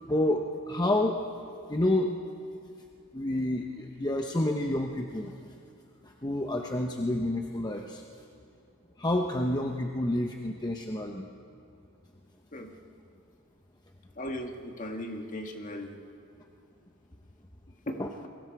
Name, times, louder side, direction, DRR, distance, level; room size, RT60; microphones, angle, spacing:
voice 1, 0.1-1.2 1.7-2.3 3.1-5.3 6.0-8.0 9.0-11.3 18.0-18.1, left 1 dB, 20° left, 2 dB, 0.9 m, -29 dB
voice 2, 14.2-15.9 17.9-18.0, left 1 dB, 40° left, 3 dB, 1.8 m, -37 dB
28.5 x 23.0 x 4.7 m, 2.5 s
head